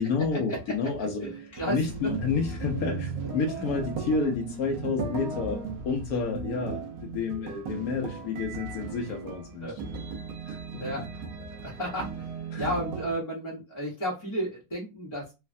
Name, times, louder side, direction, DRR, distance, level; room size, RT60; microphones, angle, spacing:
voice 1, 0.0-9.7 10.5-10.9 12.5-12.7, left 5 dB, 75° left, 0.8 m, -30 dB
sound 1, 0.5-13.1, right 4 dB, 70° right, 0.9 m, -36 dB
voice 2, 1.0-1.8 2.9-3.0 3.5-3.6 9.6-9.8 10.8-11.0 11.3-12.3 12.5-15.3, right 1 dB, 35° left, 0.4 m, -33 dB
3.2 x 2.1 x 2.5 m
omnidirectional pair, 2.0 m